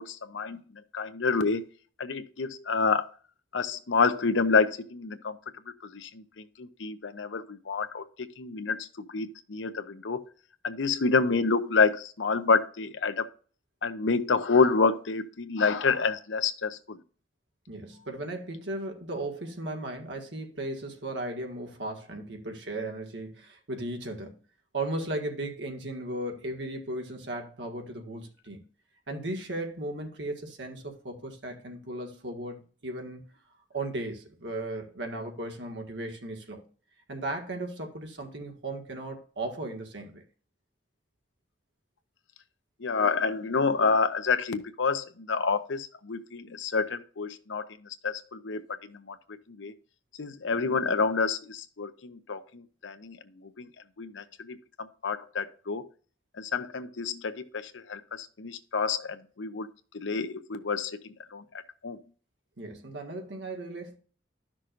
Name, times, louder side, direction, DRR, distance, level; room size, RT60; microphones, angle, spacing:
voice 1, 0.0-1.6 2.0-3.1 3.5-5.4 5.9-10.2 10.6-13.2 13.8-17.0 42.8-49.7 50.2-53.7 54.0-55.9 56.4-59.7 59.9-61.4 61.8-62.0, left 4 dB, 85° left, 0.8 m, -28 dB
voice 2, 17.7-24.4 24.7-28.6 29.1-33.2 33.7-36.7 37.1-40.2 62.6-64.0, right 2 dB, 70° right, 1.8 m, -36 dB
12.5 x 6.2 x 2.5 m
head